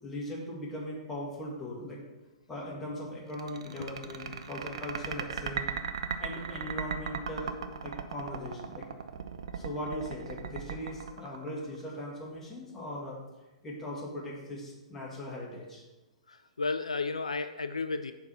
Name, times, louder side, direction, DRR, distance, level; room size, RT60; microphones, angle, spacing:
voice 1, 0.0-2.0 2.5-5.7 6.2-7.5 7.8-8.9 9.5-13.2 13.6-15.8, left 1 dB, 10° left, -5 dB, 2.2 m, -39 dB
sound 1, 3.3-12.0, right 7 dB, 65° right, 0.5 m, -36 dB
voice 2, 16.3-18.1, left 3 dB, 80° left, 10 dB, 0.4 m, -33 dB
5.8 x 4.8 x 5.7 m, 1.1 s
figure-of-eight pair, 110°, 3 cm